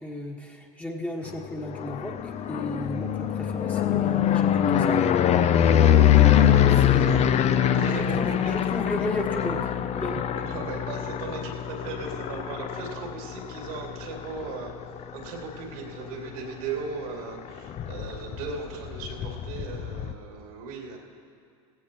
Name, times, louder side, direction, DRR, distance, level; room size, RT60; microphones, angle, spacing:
voice 1, 0.0-5.0 6.7-7.3 7.9-9.7 9.9-10.2, left 1 dB, 10° left, 0 dB, 1.5 m, -34 dB
sound 1, 1.5-15.5 15.9-16.4 16.7-16.8 17.1-20.1, left 10 dB, 35° left, 0.6 m, -23 dB
voice 2, 5.8-7.2 7.7-8.6 10.3-14.7 15.1-21.0, right 4 dB, 75° right, 0 dB, 2.8 m, -38 dB
17.0 x 15.5 x 3.0 m, 2.2 s
hypercardioid pair, 95°, 19 cm